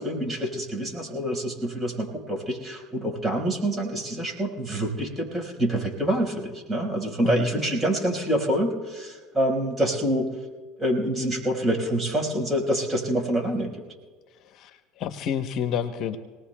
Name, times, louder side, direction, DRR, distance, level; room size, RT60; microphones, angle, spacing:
voice 1, 0.0-10.3 10.8-13.8, right 1 dB, 20° right, 0 dB, 4.8 m, -26 dB
voice 2, 14.4-16.2, left 8 dB, 55° left, 8 dB, 0.9 m, -29 dB
27.0 x 19.0 x 2.3 m, 1.4 s
hypercardioid pair, 75°, 0 cm